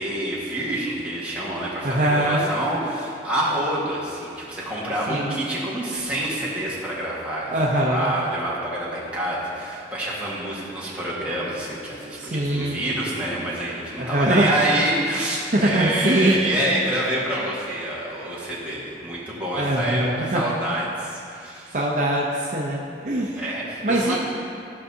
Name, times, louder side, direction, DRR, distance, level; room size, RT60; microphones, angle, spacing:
voice 1, 0.0-21.8 23.0-24.2, right 1 dB, 10° right, -8 dB, 1.6 m, -27 dB
voice 2, 1.8-2.5 5.1-5.3 7.5-8.1 12.2-12.8 14.0-14.5 15.5-16.6 19.6-20.4 21.7-23.4 23.8-24.2, right 1 dB, 45° right, -3 dB, 0.7 m, -22 dB
14.0 x 5.5 x 2.8 m, 2.4 s
head